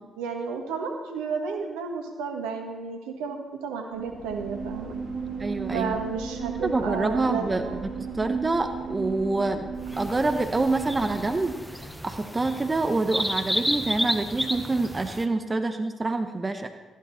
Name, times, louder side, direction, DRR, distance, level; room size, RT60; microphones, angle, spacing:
voice 1, 0.0-4.9 5.7-7.8, right 5 dB, 75° right, 3 dB, 1.5 m, -32 dB
sound 1, 3.9-11.7, right 5 dB, 60° right, 2.9 m, -35 dB
voice 2, 5.4-6.0 6.6-9.6 10.0-11.6 12.0-16.7, right 2 dB, 25° right, 7 dB, 1.1 m, -26 dB
sound 2, 9.9-15.2, equal, ahead, 1.2 m, -31 dB
14.0 x 10.5 x 4.2 m, 1.2 s
hypercardioid pair, 40°, 0 cm